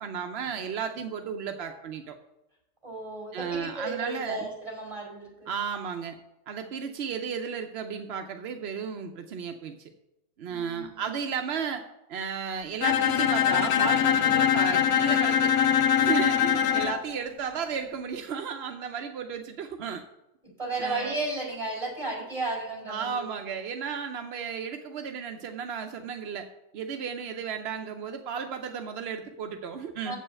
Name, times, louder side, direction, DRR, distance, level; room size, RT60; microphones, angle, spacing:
voice 1, 0.0-2.1 3.3-4.5 5.5-6.1 6.5-9.8 10.4-11.8 12.1-15.5 16.0-20.0 20.8-21.2 22.9-26.5 26.7-30.1, right 6 dB, 65° right, 6 dB, 0.6 m, -34 dB
voice 2, 2.8-5.5 10.5-11.1 16.5-16.8 20.6-23.3 30.0-30.2, right 2 dB, 20° right, -4 dB, 4.2 m, -34 dB
Bowed string instrument, 12.8-17.0, left 9 dB, 75° left, 1.2 m, -23 dB
7.5 x 5.5 x 7.5 m, 0.90 s
omnidirectional pair, 1.8 m